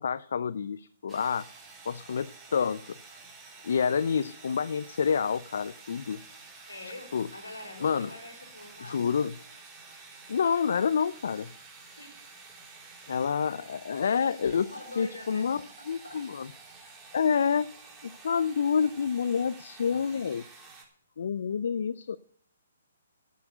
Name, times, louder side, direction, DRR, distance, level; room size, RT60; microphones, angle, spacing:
voice 1, 0.0-1.5 1.9-2.9 3.6-6.2 6.8-7.3 7.8-8.1 8.8-9.4 10.3-11.5 13.1-16.5 17.1-17.7 18.0-20.4 21.2-22.2, left 6 dB, 65° left, 18 dB, 0.5 m, -28 dB
sound 1, 1.1-20.9, right 4 dB, 10° right, 3.4 m, -50 dB
voice 2, 6.7-9.1 12.0-12.3 14.7-15.6 16.0-16.2, left 2 dB, 85° left, 3 dB, 5.4 m, -45 dB
10.5 x 9.4 x 8.0 m, 0.62 s
hypercardioid pair, 135°, 0 cm